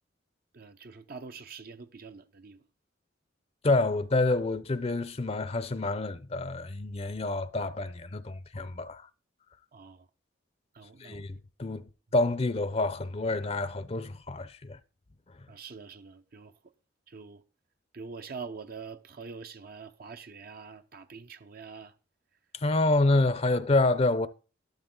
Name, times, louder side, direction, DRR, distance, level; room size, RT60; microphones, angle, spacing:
voice 1, 0.5-2.6 9.7-10.1 10.7-11.4 15.5-16.7 17.1-17.4 17.9-21.9, right 5 dB, 50° right, 0.7 m, -45 dB
voice 2, 3.6-9.0 11.0-14.8 22.5-24.3, left 2 dB, 35° left, 0.6 m, -28 dB
12.0 x 12.0 x 3.8 m
head